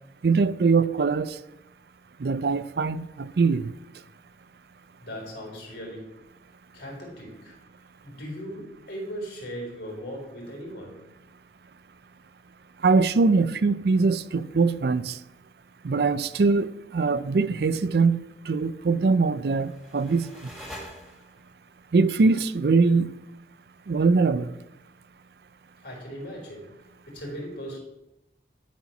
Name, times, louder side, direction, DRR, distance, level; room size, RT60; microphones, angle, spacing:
voice 1, 0.2-1.4 2.2-3.7 12.8-15.2 15.8-20.5 21.9-23.1 23.9-24.6, right 4 dB, 70° right, 0.4 m, -22 dB
voice 2, 5.0-6.1 6.7-7.6 8.0-11.0 25.8-26.7 27.1-27.8, equal, 80° left, 3.9 m, -38 dB
sound 1, 19.2-21.6, equal, ahead, 1.9 m, -45 dB
11.5 x 4.3 x 5.9 m
head